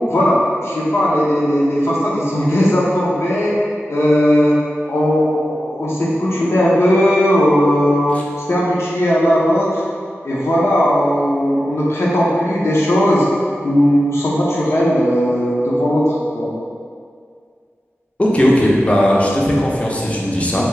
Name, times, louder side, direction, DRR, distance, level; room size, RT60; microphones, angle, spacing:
voice 1, 0.1-3.6 3.9-4.6 4.9-8.2 8.5-9.8 10.2-13.2 13.6-16.0 16.3-16.5, equal, 70° left, -7 dB, 0.7 m, -16 dB
voice 2, 18.2-20.6, equal, 25° left, -4 dB, 0.6 m, -16 dB
3.4 x 2.7 x 3.2 m, 2.1 s
wide cardioid pair, 70°, 5 cm